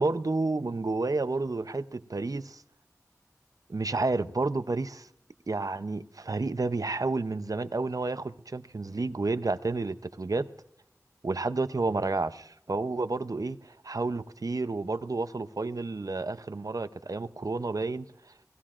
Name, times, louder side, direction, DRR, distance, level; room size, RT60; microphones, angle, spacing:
voice 1, 0.0-2.6 3.7-5.1 5.5-10.5 11.2-18.1, right 3 dB, 75° right, 0.6 m, -30 dB
29.5 x 18.5 x 2.5 m
wide cardioid pair, 45°, 6 cm